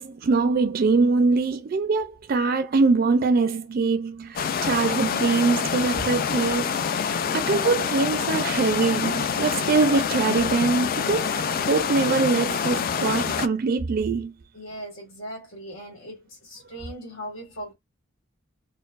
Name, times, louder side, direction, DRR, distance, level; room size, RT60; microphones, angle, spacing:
voice 1, 0.0-14.3, right 4 dB, 50° right, 0.4 m, -23 dB
sound 1, 4.4-13.5, left 7 dB, 45° left, 0.3 m, -26 dB
voice 2, 14.5-17.7, equal, 85° left, 1.7 m, -39 dB
4.5 x 2.1 x 2.3 m
head